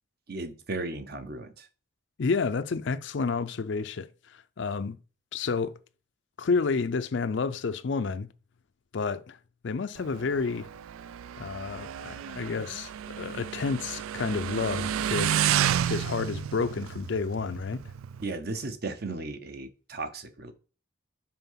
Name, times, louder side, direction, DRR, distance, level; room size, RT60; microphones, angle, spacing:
voice 1, 0.3-1.7 18.2-20.5, right 3 dB, 50° right, 0.8 m, -35 dB
voice 2, 2.2-5.0 5.3-5.7 6.4-8.3 8.9-9.4 9.6-10.7 11.4-15.4 15.9-17.8, left 4 dB, 60° left, 0.4 m, -30 dB
Motorcycle, 10.0-18.2, right 10 dB, 85° right, 0.3 m, -31 dB
5.7 x 4.6 x 5.7 m
head